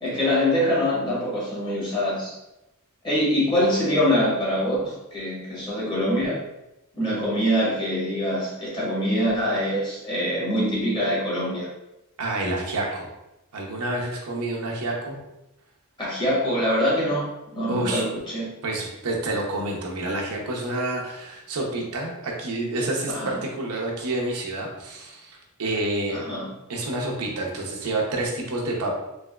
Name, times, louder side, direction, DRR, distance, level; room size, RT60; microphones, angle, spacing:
voice 1, 0.0-2.4 3.0-6.4 6.9-11.7 16.0-18.5 23.1-23.4 26.1-26.5, equal, 20° left, -6 dB, 1.2 m, -24 dB
voice 2, 12.2-13.1 13.5-15.2 17.7-18.0 18.6-26.2 26.7-28.9, right 2 dB, 85° right, 0 dB, 0.7 m, -28 dB
3.3 x 2.9 x 2.3 m, 0.93 s
head